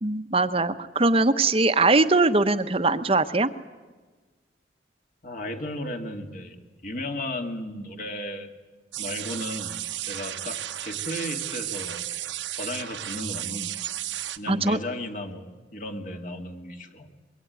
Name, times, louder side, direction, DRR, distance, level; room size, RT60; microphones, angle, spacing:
voice 1, 0.0-3.5 14.5-14.8, right 3 dB, 30° right, 10 dB, 0.9 m, -21 dB
voice 2, 5.2-6.6 6.8-8.5 9.0-9.8 10.1-12.0 12.5-13.7 14.4-17.1, left 1 dB, 45° left, 4 dB, 2.3 m, -35 dB
sound 1, 8.9-14.4, right 13 dB, 80° right, 1.1 m, -33 dB
24.5 x 22.5 x 9.4 m, 1.3 s
head